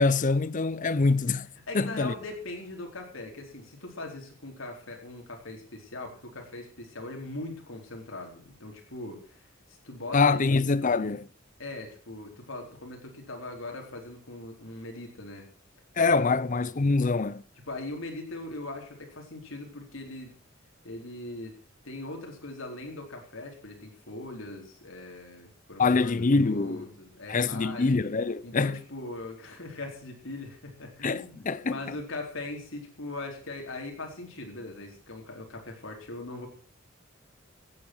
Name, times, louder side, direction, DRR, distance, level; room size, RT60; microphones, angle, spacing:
voice 1, 0.0-1.5 1.7-2.2 10.1-11.3 16.0-17.4 25.8-26.9 27.3-28.8 31.0-32.0, left 3 dB, 40° left, 0.6 m, -25 dB
voice 2, 1.7-9.4 9.8-11.1 11.6-15.4 16.0-16.4 17.7-20.3 20.8-21.6 21.8-27.9 28.4-36.5, left 2 dB, 75° left, 4.2 m, -40 dB
15.0 x 9.2 x 6.2 m
head